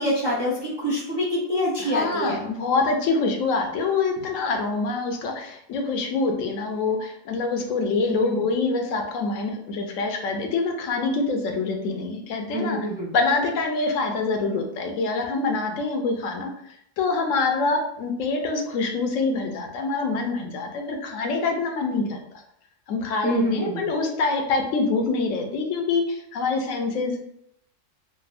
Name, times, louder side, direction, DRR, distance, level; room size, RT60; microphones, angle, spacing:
voice 1, 0.0-2.4 8.1-8.5 12.5-13.1 23.2-23.8, equal, 40° right, -8 dB, 0.4 m, -26 dB
voice 2, 1.8-12.8 13.1-22.2 22.9-27.2, left 3 dB, 90° left, 3 dB, 1.0 m, -25 dB
3.2 x 2.0 x 2.4 m, 0.73 s
omnidirectional pair, 1.3 m